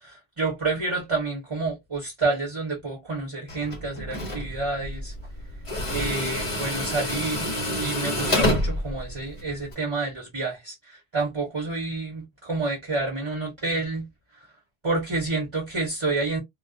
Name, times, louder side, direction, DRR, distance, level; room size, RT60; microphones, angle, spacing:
voice 1, 0.0-5.1 5.9-14.1 14.8-16.4, right 3 dB, 30° right, 0.9 m, -29 dB
Tools, 3.5-9.7, left 1 dB, 35° left, 0.8 m, -28 dB
2.2 x 2.2 x 2.6 m
omnidirectional pair, 1.0 m